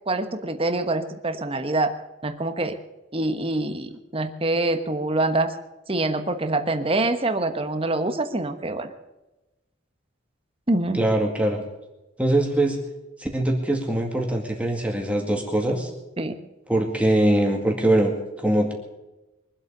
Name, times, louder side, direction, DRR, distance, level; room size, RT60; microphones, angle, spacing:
voice 1, 0.1-1.9 2.2-2.8 3.1-5.5 5.9-8.9 10.7-11.0 16.2-16.4, right 2 dB, 30° right, 8 dB, 1.2 m, -25 dB
voice 2, 10.9-11.6 12.2-12.8 13.2-15.9 16.7-18.1 18.4-18.7, right 1 dB, 5° right, 1 dB, 2.1 m, -22 dB
23.5 x 8.2 x 6.7 m, 1.0 s
head